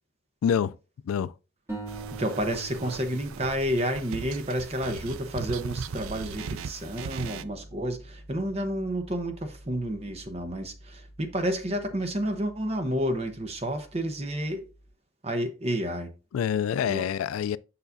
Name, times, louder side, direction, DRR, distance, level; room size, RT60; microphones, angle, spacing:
voice 1, 0.4-0.7 1.1-1.3 16.3-17.6, left 8 dB, 90° left, 0.3 m, -26 dB
sound 1, 1.7-4.9, right 3 dB, 15° right, 2.5 m, -42 dB
sound 2, 1.9-7.4, right 6 dB, 80° right, 0.4 m, -38 dB
voice 2, 2.2-14.7 15.2-16.1 16.9-17.0, equal, 30° right, 0.9 m, -30 dB
Piano, 4.7-14.9, equal, 45° left, 2.1 m, -50 dB
6.9 x 5.7 x 2.6 m
head